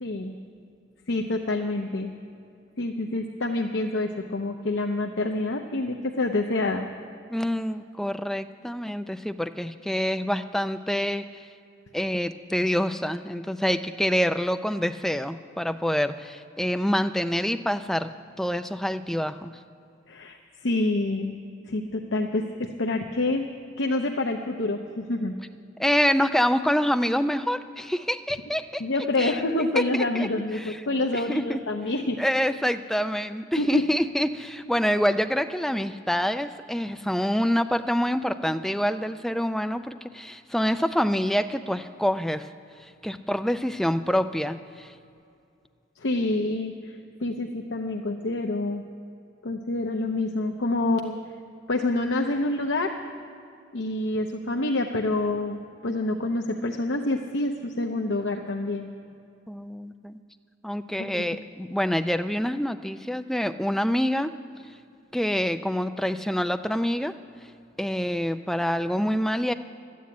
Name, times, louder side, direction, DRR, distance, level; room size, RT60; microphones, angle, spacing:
voice 1, 0.0-0.4 1.1-2.1 2.8-6.9 20.1-21.4 21.7-23.5 23.8-25.3 28.8-32.2 33.6-33.8 46.0-48.8 49.4-51.2 51.7-52.9 53.7-55.6 55.8-58.9 61.0-61.2, left 2 dB, 70° left, 3 dB, 0.7 m, -27 dB
voice 2, 7.3-11.4 11.9-19.5 25.8-28.8 29.2-29.4 29.9-30.3 30.6-30.8 31.1-31.6 32.2-42.4 43.0-44.9 59.5-60.2 60.6-64.3 65.1-67.1 67.8-69.5, equal, ahead, 9 dB, 0.4 m, -26 dB
12.5 x 9.4 x 8.5 m, 2.5 s
head